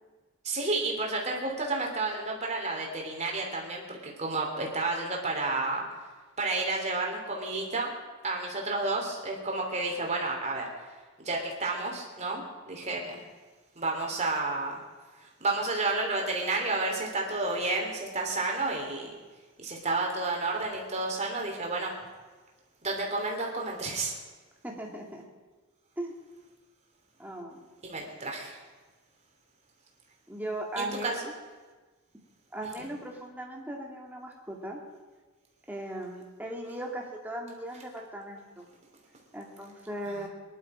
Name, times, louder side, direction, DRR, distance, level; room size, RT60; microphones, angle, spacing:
voice 1, 0.4-5.8 6.4-7.9 8.2-10.6 11.2-13.3 13.7-14.8 15.2-19.1 19.6-21.9 22.8-24.1 27.8-28.6 30.8-31.1 40.1-40.3, right 3 dB, 30° right, 0 dB, 3.1 m, -31 dB
voice 2, 24.6-25.2 26.0-26.1 27.2-27.6 30.3-31.2 32.5-34.8 35.7-38.7 39.3-40.3, right 1 dB, 10° right, 0 dB, 2.2 m, -38 dB
22.0 x 11.0 x 5.0 m, 1.3 s
head